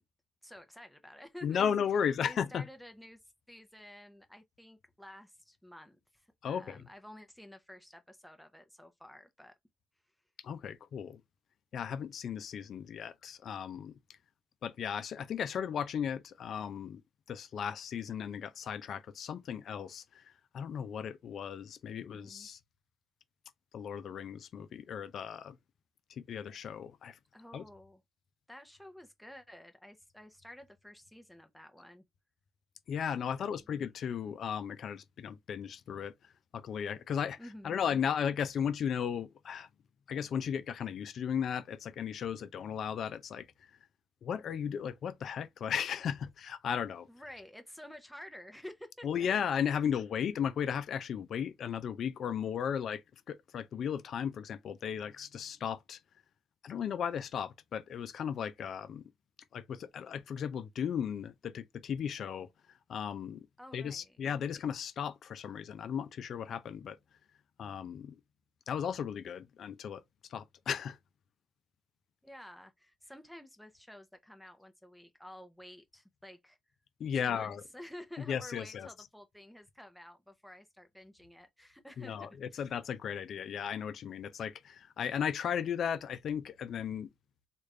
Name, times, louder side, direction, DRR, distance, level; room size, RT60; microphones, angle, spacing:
voice 1, 0.4-1.7 2.2-3.2 3.5-9.5 21.9-22.5 27.3-28.0 28.5-32.0 33.3-33.5 37.4-37.8 47.1-49.3 63.6-64.2 72.2-76.6 77.1-82.7, left 1 dB, ahead, 0.7 m, -51 dB
voice 2, 1.4-2.7 6.4-6.9 10.4-11.2 11.7-13.9 14.6-17.0 17.3-20.2 20.5-22.6 23.7-25.6 26.2-27.2 27.5-27.6 32.9-36.1 36.5-37.4 37.6-39.7 40.1-43.5 44.2-47.1 49.0-53.0 53.3-56.0 56.6-59.0 59.5-62.5 62.9-63.5 63.7-67.0 67.6-68.2 68.7-70.0 70.3-71.0 77.0-77.6 78.2-78.9 82.0-87.1, left 8 dB, 65° left, 0.5 m, -35 dB
3.2 x 2.5 x 3.2 m
cardioid pair, 90°, 0 cm